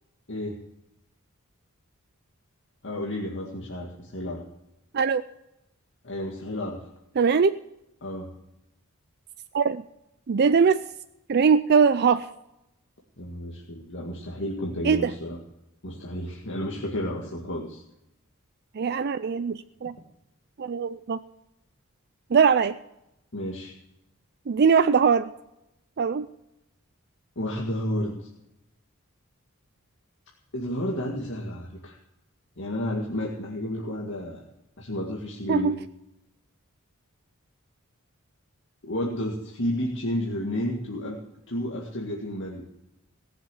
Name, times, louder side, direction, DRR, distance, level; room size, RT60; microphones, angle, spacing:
voice 1, 0.3-0.6 2.8-4.4 6.0-6.8 8.0-8.3 13.2-15.4 15.8-17.8 23.3-23.7 27.4-28.3 30.5-32.0 32.6-34.4 34.8-35.8 38.8-41.2 41.5-42.6, left 1 dB, 60° left, -2 dB, 2.0 m, -31 dB
voice 2, 7.2-7.6 9.5-9.8 10.3-10.8 11.3-12.3 14.8-15.1 18.7-19.9 20.6-21.2 22.3-22.8 24.5-25.3 26.0-26.3 35.5-35.7, right 6 dB, 50° right, 11 dB, 0.4 m, -21 dB
18.0 x 7.4 x 8.3 m, 0.87 s
head